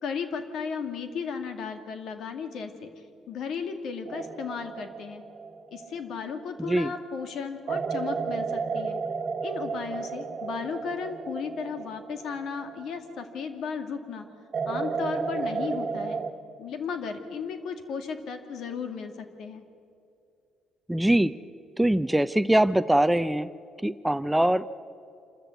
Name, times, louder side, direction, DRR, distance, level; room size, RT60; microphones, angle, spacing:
voice 1, 0.0-2.9 3.3-5.2 5.7-9.0 9.4-14.3 14.7-16.2 16.6-19.6, left 6 dB, 70° left, 7 dB, 2.1 m, -35 dB
sound 1, 4.1-6.7 7.7-13.5 14.5-16.3, right 5 dB, 40° right, 1.5 m, -33 dB
voice 2, 6.6-6.9 20.9-21.3 21.8-23.5 23.8-24.7, right 1 dB, 5° right, 14 dB, 0.6 m, -22 dB
27.0 x 13.5 x 8.3 m, 2.5 s
cardioid pair, 90°, 0 cm